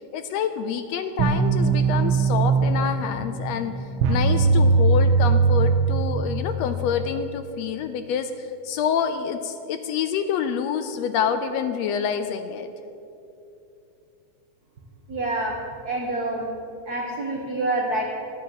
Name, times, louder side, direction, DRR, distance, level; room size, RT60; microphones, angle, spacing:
voice 1, 0.1-3.7 4.1-12.7, left 7 dB, 75° left, 9 dB, 1.6 m, -27 dB
sound 1, 1.2-6.8, right 4 dB, 75° right, 1.2 m, -20 dB
voice 2, 15.1-15.6 15.8-16.5 16.8-18.0, right 2 dB, 50° right, -1 dB, 1.2 m, -27 dB
12.5 x 8.5 x 7.7 m, 2.8 s
omnidirectional pair, 3.3 m